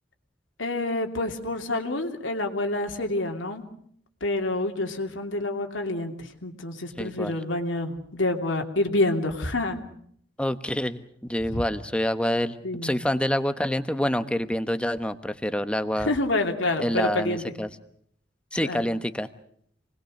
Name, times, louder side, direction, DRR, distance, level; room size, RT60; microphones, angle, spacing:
voice 1, 0.6-3.6 4.2-9.8 11.5-11.6 12.6-13.0 16.0-17.4 18.6-18.8, left 2 dB, 90° left, 4 dB, 2.8 m, -27 dB
voice 2, 7.0-7.3 10.4-11.0 11.3-12.6 12.8-16.1 16.8-17.7 18.5-19.3, equal, 5° left, 10 dB, 1.1 m, -27 dB
28.0 x 20.5 x 6.5 m, 0.65 s
head